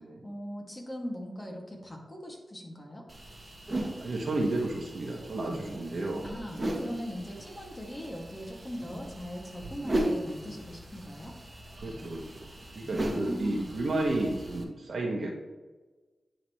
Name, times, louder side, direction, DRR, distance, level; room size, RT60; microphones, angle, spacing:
voice 1, 0.2-3.0 6.2-11.3 13.2-14.1, equal, 30° left, -1 dB, 2.1 m, -40 dB
sound 1, 3.1-14.6, right 1 dB, 35° right, 1.5 m, -37 dB
voice 2, 4.0-6.3 11.8-12.2 12.7-15.3, right 2 dB, 70° right, 0 dB, 1.4 m, -31 dB
10.0 x 4.0 x 3.1 m, 1.2 s
cardioid pair, 45°, 0 cm